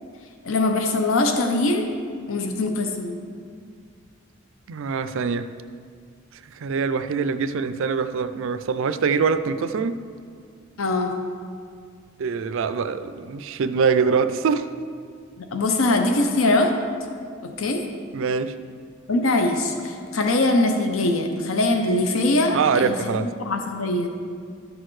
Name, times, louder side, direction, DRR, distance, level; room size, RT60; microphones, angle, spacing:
voice 1, 0.4-1.9 2.3-3.2 10.8-11.1 15.5-16.7 17.4-17.8 19.1-24.1, left 2 dB, 70° left, 4 dB, 0.7 m, -22 dB
voice 2, 4.7-5.5 6.5-10.0 12.2-14.7 18.1-18.6 22.5-23.3, right 5 dB, 65° right, 11 dB, 0.4 m, -24 dB
13.0 x 6.3 x 3.2 m, 2.1 s
head